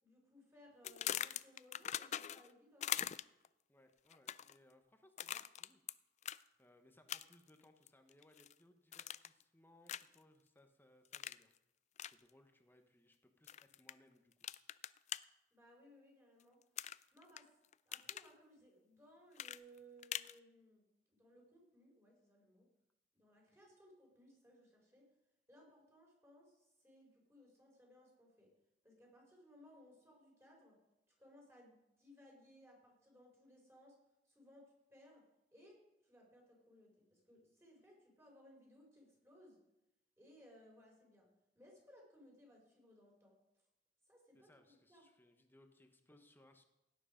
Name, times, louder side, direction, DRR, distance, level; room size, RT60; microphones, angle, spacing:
voice 1, 0.0-2.9 15.5-16.6 16.9-17.5 17.9-20.9 21.2-22.7 23.1-25.0 25.5-28.5 28.8-30.7 31.2-33.9 34.2-34.6 34.9-35.2 35.5-39.6 40.2-41.3 41.5-43.4 44.1-44.5 44.9-45.0, equal, 15° right, -2 dB, 4.6 m, -63 dB
sound 1, 0.8-2.5 2.8-3.5 4.1-4.6 5.2-5.9 6.2-6.4 7.1-7.5 7.9-8.5 8.9-9.4 9.9-10.2 11.1-11.4 12.0-12.1 13.5-13.9 14.4-15.2 16.8-17.4 17.7-18.3 19.4-20.3, left 11 dB, 40° left, 0.3 m, -42 dB
voice 2, 3.7-5.8 6.6-11.5 12.0-14.3 44.3-46.6, left 1 dB, 10° left, 6 dB, 1.1 m, -67 dB
17.0 x 9.4 x 5.1 m, 0.93 s
head